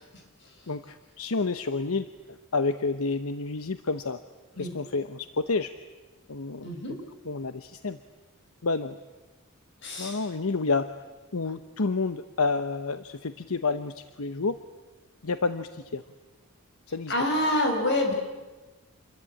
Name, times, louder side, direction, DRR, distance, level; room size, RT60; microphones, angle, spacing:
voice 1, 0.7-4.2 4.6-5.7 6.3-6.7 7.3-8.0 8.6-9.0 10.0-11.0 11.3-14.6 15.2-16.0 16.9-17.1, left 3 dB, 80° left, 11 dB, 0.9 m, -29 dB
voice 2, 6.6-6.9 9.8-10.3 17.1-18.1, left 1 dB, 55° left, 3 dB, 6.5 m, -26 dB
28.0 x 22.5 x 9.0 m, 1.2 s
head